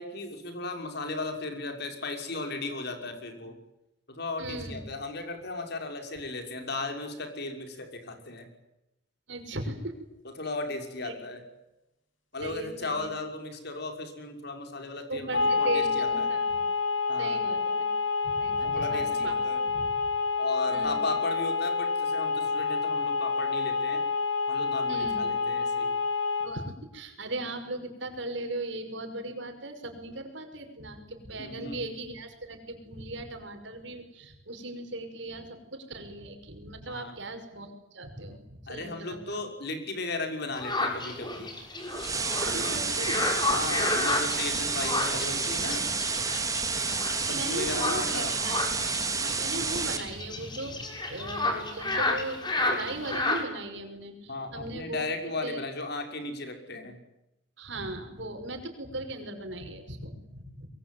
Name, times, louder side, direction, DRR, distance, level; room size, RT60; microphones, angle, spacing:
voice 1, 0.0-3.5 4.1-8.5 10.4-11.4 12.3-16.3 17.1-17.4 18.6-19.6 20.4-24.0 24.5-25.9 31.4-31.8 36.9-37.1 38.7-41.5 43.4-45.9 47.1-48.4 54.3-57.0, left 3 dB, 60° left, 5 dB, 5.9 m, -36 dB
voice 2, 4.4-4.8 9.3-10.0 11.0-11.1 12.4-13.1 15.1-16.7 17.2-17.8 18.2-19.4 19.6-19.9 20.7-21.1 24.9-25.2 26.4-39.4 42.4-43.3 47.3-48.7 49.1-55.0 55.4-55.6 57.6-60.7, right 2 dB, 65° right, 6 dB, 6.0 m, -38 dB
sound 1, 15.3-26.5, left 4 dB, 90° left, 5.8 m, -28 dB
sound 2, 40.5-53.4, left 2 dB, 25° left, 6.5 m, -31 dB
sound 3, 41.9-50.0, right 4 dB, 20° right, 3.0 m, -30 dB
24.5 x 23.0 x 9.5 m, 0.92 s
head